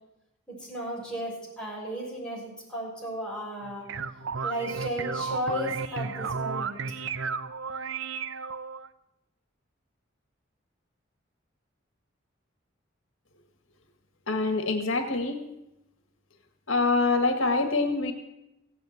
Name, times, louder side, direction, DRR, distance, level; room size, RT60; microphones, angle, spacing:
voice 1, 0.5-3.9 4.4-6.8, equal, 5° left, -4 dB, 6.7 m, -34 dB
sound 1, 3.6-8.9, right 5 dB, 70° right, 0.7 m, -33 dB
voice 2, 14.3-15.4 16.7-18.1, left 3 dB, 80° left, 7 dB, 1.7 m, -25 dB
16.0 x 9.3 x 9.5 m, 0.94 s
head